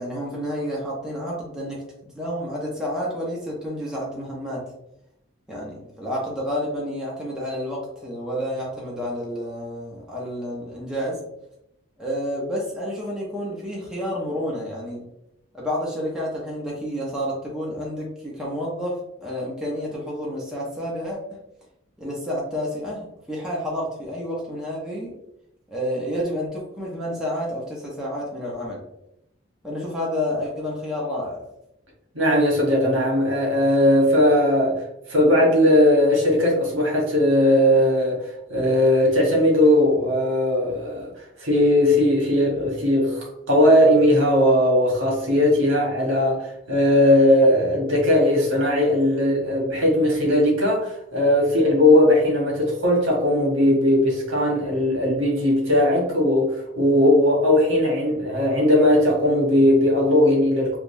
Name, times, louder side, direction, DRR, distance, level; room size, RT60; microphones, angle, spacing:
voice 1, 0.0-4.6 5.5-11.2 12.0-15.0 15.5-21.4 22.0-25.1 25.7-28.8 29.6-31.4, equal, 5° right, 0.7 m, -30 dB
voice 2, 32.1-34.8 35.1-41.1 41.4-60.8, left 1 dB, 80° right, 1.2 m, -18 dB
3.5 x 2.4 x 2.6 m
head